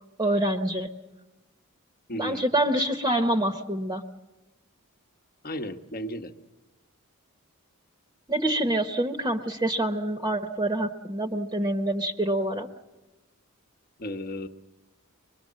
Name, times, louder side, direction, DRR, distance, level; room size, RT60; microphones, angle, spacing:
voice 1, 0.2-0.9 2.1-4.0 8.3-12.7, right 1 dB, 15° right, 5 dB, 0.9 m, -26 dB
voice 2, 2.1-2.4 5.4-6.3 14.0-14.5, equal, 40° left, 8 dB, 1.0 m, -34 dB
24.5 x 22.0 x 7.4 m, 1.1 s
head